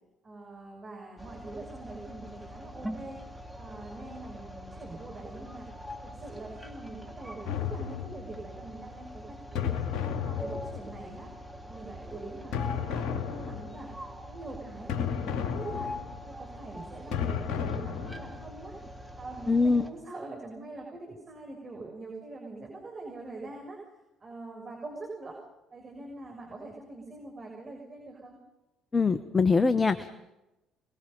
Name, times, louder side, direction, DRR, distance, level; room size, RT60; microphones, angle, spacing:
voice 1, 0.2-3.2 3.6-5.7 6.0-9.9 10.2-11.3 11.7-13.9 14.2-15.9 16.2-18.8 19.1-23.8 24.2-25.4 25.7-28.4, right 2 dB, 35° right, 0 dB, 6.6 m, -43 dB
sound 1, 1.2-19.9, equal, 5° right, 3.5 m, -43 dB
sound 2, 7.5-8.5 9.6-11.1 12.5-13.9 14.9-16.3 17.1-18.5, left 8 dB, 65° left, 2.8 m, -33 dB
voice 2, 19.5-19.8 28.9-30.2, left 4 dB, 25° left, 11 dB, 1.1 m, -23 dB
28.0 x 21.5 x 5.5 m, 0.97 s
hypercardioid pair, 55°, 0 cm